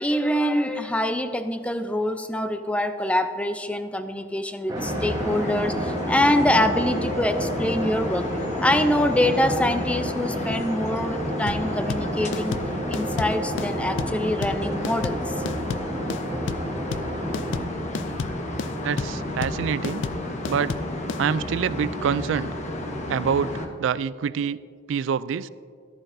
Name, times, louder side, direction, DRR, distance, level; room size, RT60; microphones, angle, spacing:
voice 1, 0.0-8.3 8.6-12.6 12.9-15.2, left 1 dB, 5° left, 9 dB, 0.5 m, -24 dB
sound 1, 4.7-23.7, left 1 dB, 40° left, 1.0 m, -32 dB
sound 2, 4.7-17.6, right 1 dB, 20° right, 1.1 m, -32 dB
sound 3, 11.5-21.2, left 5 dB, 70° left, 0.4 m, -32 dB
voice 2, 18.8-20.0 20.5-20.7 21.2-22.5 23.1-24.6 24.9-25.5, right 7 dB, 80° right, 17 dB, 0.3 m, -26 dB
14.0 x 13.5 x 2.6 m, 2.2 s
head